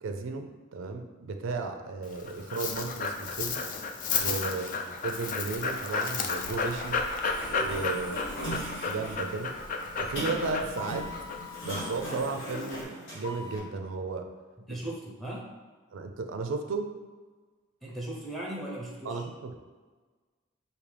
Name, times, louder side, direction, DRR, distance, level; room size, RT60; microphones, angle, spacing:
voice 1, 0.0-3.6 4.1-4.8 5.0-7.0 7.6-9.5 10.0-11.1 11.6-14.3 14.7-14.8 15.9-16.9 19.1-19.6, right 4 dB, 75° right, 5 dB, 0.4 m, -34 dB
Dog, 2.0-12.8, left 4 dB, 40° left, 0.3 m, -33 dB
voice 2, 4.5-4.9 8.1-8.4 14.7-15.5 17.8-19.2, right 1 dB, ahead, -4 dB, 0.7 m, -39 dB
Sliding door, 7.1-13.6, equal, 70° left, 1.3 m, -39 dB
5.1 x 2.8 x 3.3 m, 1.4 s
head